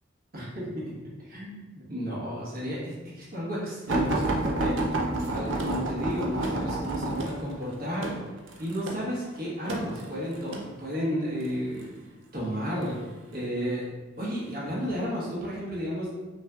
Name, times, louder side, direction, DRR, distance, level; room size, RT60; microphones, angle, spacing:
voice 1, 0.3-0.9 1.2-4.8 5.3-8.2 8.6-11.9 12.3-13.0 13.3-13.8 14.2-16.1, equal, 50° right, -6 dB, 1.3 m, -32 dB
sound 1, 3.9-10.7 11.4-11.9 12.8-13.5 14.2-14.4 14.8-14.9, right 2 dB, 75° right, 0.6 m, -30 dB
5.5 x 3.2 x 2.4 m, 1.2 s
head